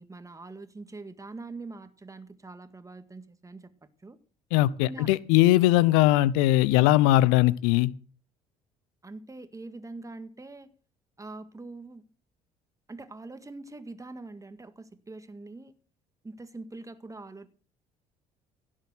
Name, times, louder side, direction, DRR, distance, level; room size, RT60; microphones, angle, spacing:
voice 1, 0.0-3.7 4.0-4.2 4.8-5.1 9.0-10.7 11.2-12.0 12.9-15.7 16.2-17.5, right 3 dB, 20° right, 1.8 m, -43 dB
voice 2, 4.5-7.9, left 16 dB, 75° left, 0.6 m, -20 dB
16.5 x 7.4 x 6.1 m
hypercardioid pair, 60°, 18 cm